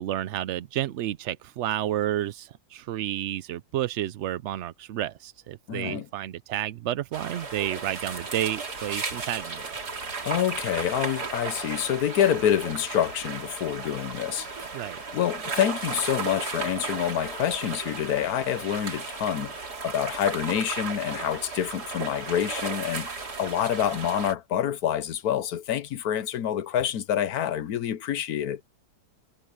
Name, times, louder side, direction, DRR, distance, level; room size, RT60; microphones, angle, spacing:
voice 1, 0.0-9.6 14.7-15.0, right 12 dB, 70° right, 0.7 m, -31 dB
voice 2, 5.7-6.1 10.2-14.7 15.1-28.6, left 10 dB, 70° left, 1.3 m, -27 dB
sound 1, 7.1-24.3, right 4 dB, 85° right, 3.2 m, -35 dB
omnidirectional pair, 1.7 m